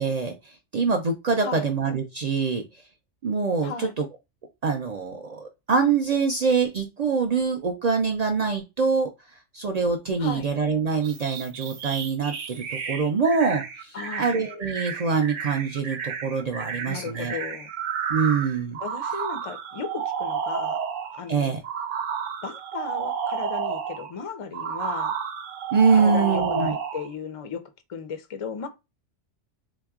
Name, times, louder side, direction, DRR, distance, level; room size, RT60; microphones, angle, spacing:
voice 1, 0.0-2.6 3.2-4.0 4.6-9.1 9.5-17.4 18.1-18.8 21.3-21.6 25.7-26.8, right 5 dB, 70° right, 0.4 m, -24 dB
voice 2, 3.6-3.9 10.2-10.5 13.9-14.3 16.9-17.7 18.8-20.8 21.1-21.6 22.4-25.1 25.9-27.6 27.9-28.7, left 5 dB, 60° left, 0.3 m, -35 dB
Robotic Chirping from whitenoise with Knock, 11.0-21.2 21.6-24.1 24.5-27.1, right 7 dB, 85° right, 1.0 m, -31 dB
3.6 x 2.9 x 2.3 m
omnidirectional pair, 1.2 m